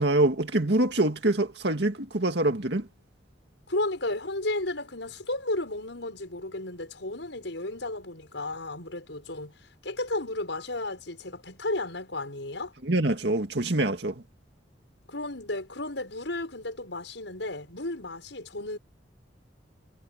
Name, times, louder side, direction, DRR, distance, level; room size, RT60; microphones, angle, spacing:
voice 1, 0.0-2.9 12.8-14.1, right 2 dB, 65° right, 2.2 m, -25 dB
voice 2, 3.7-12.7 15.1-18.8, left 2 dB, 80° left, 6.5 m, -33 dB
head